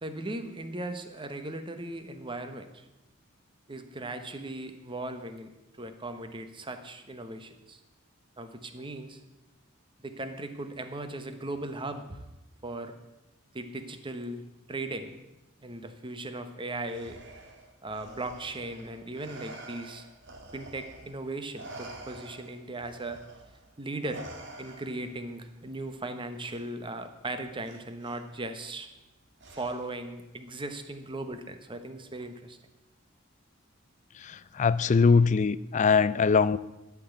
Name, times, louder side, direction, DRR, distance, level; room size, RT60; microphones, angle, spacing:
voice 1, 0.0-2.9 3.7-5.5 5.8-7.8 8.4-9.2 10.0-12.2 12.6-12.9 13.5-14.4 14.7-15.2 15.6-17.2 17.8-20.1 20.5-23.2 23.8-24.2 24.6-28.9 29.5-32.6, right 2 dB, 25° right, 8 dB, 1.0 m, -38 dB
Respiratory sounds, 16.8-21.2 21.5-25.2 26.4-26.6 27.6-28.2 29.4-30.0, right 2 dB, 60° right, 1.7 m, -47 dB
voice 2, 34.1-36.6, left 5 dB, 35° left, 18 dB, 0.4 m, -22 dB
12.5 x 6.0 x 8.2 m, 0.98 s
head